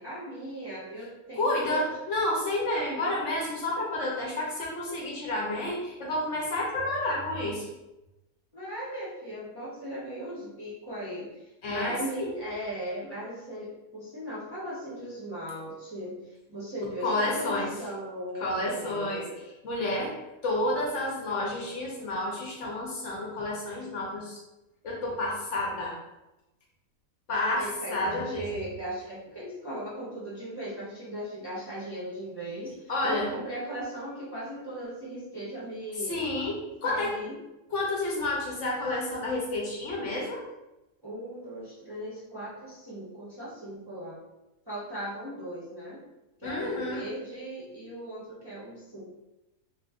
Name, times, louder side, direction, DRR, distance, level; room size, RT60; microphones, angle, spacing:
voice 1, 0.0-1.9 8.5-19.3 27.6-36.2 36.8-37.4 41.0-44.2 44.7-46.0 46.4-49.0, equal, 20° right, -9 dB, 0.7 m, -38 dB
voice 2, 1.3-7.7 11.6-12.3 17.0-17.7 18.4-19.2 19.6-20.1 20.4-24.4 24.8-26.0 27.3-28.4 32.9-33.3 36.1-37.1 37.7-40.4 46.4-47.0, left 1 dB, 60° left, -3 dB, 1.0 m, -30 dB
3.1 x 2.4 x 3.5 m, 0.97 s
omnidirectional pair, 1.5 m